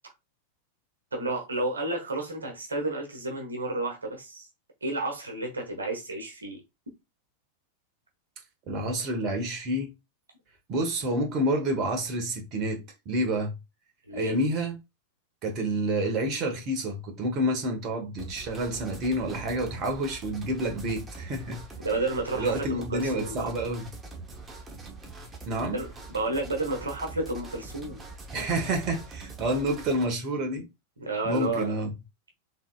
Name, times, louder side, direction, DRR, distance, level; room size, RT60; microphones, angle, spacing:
voice 1, 1.1-4.5 4.8-6.6 14.1-14.4 21.8-23.5 25.7-28.0 31.0-31.8, right 2 dB, 75° right, 1.2 m, -31 dB
voice 2, 8.7-9.9 10.7-13.5 14.1-14.8 15.4-21.6 22.3-23.9 25.5-25.8 28.3-30.7 31.2-31.9, right 1 dB, 35° right, 1.2 m, -29 dB
sound 1, 18.2-30.1, right 3 dB, 20° right, 1.0 m, -43 dB
4.2 x 3.6 x 2.3 m
figure-of-eight pair, 90°, 0 cm